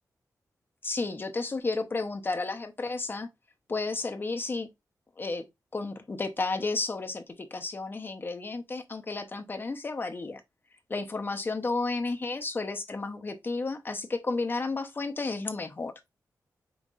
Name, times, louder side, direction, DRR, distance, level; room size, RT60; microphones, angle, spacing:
voice 1, 0.8-3.3 3.7-4.7 5.2-5.4 5.7-10.4 10.9-15.9, left 3 dB, 35° left, 0.8 m, -32 dB
5.4 x 3.8 x 2.4 m
wide cardioid pair, 115°, 7 cm